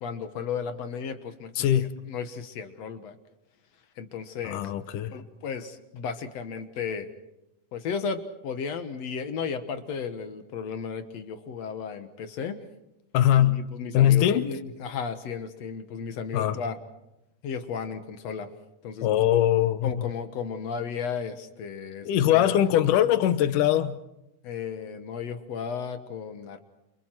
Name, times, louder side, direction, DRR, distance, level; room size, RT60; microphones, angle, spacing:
voice 1, 0.0-1.7 2.1-3.1 4.0-4.6 5.1-7.1 7.7-12.6 13.4-16.8 17.4-18.5 18.8-19.1 19.8-22.6 24.4-26.6, left 6 dB, 60° left, 2.4 m, -34 dB
voice 2, 1.6-2.0 4.4-5.2 13.1-13.7 13.9-14.5 16.3-16.6 19.0-20.0 22.1-24.0, left 11 dB, 85° left, 2.5 m, -22 dB
29.0 x 28.5 x 4.6 m
omnidirectional pair, 3.6 m